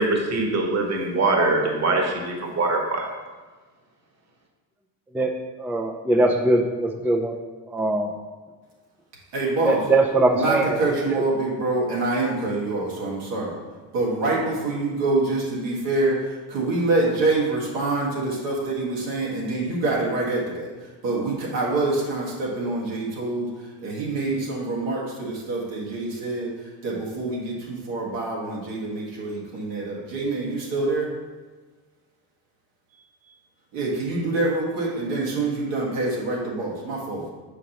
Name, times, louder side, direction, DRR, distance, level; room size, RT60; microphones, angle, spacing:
voice 1, 0.0-3.0, right 2 dB, 40° right, 1 dB, 1.2 m, -23 dB
voice 2, 5.6-7.3 7.7-8.1 9.6-11.2, right 2 dB, 5° right, 3 dB, 0.3 m, -22 dB
voice 3, 9.3-9.8 10.3-13.6 13.9-31.1 33.7-37.3, right 2 dB, 90° right, -4 dB, 1.8 m, -26 dB
6.6 x 5.0 x 2.9 m, 1.3 s
cardioid pair, 105°, 42 cm